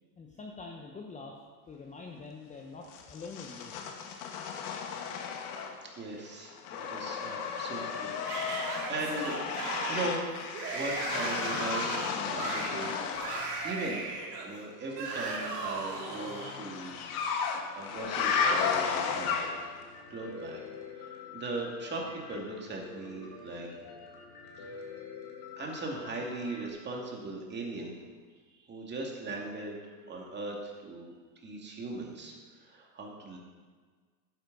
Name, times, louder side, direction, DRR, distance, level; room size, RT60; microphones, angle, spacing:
voice 1, 0.2-1.4 1.7-3.7, left 4 dB, 15° left, 0 dB, 0.9 m, -45 dB
sound 1, 2.9-6.0 6.3-13.5 15.1-19.8, left 6 dB, 65° left, 1.6 m, -34 dB
voice 2, 5.0-5.4 5.9-9.4 9.9-10.2 10.7-12.9 13.2-13.3 13.6-17.0 17.4-19.5 20.1-20.6 20.9-23.7 24.6-24.8 25.6-28.0 28.6-29.8 30.1-31.1 31.4-33.4, right 2 dB, 20° right, -1 dB, 2.3 m, -39 dB
Yell / Screaming, 8.2-16.5, right 4 dB, 75° right, 2.7 m, -37 dB
Piano, 18.0-26.7, left 5 dB, 50° left, 2.4 m, -47 dB
11.5 x 10.0 x 4.1 m, 1.5 s
supercardioid pair, 125°, 47 cm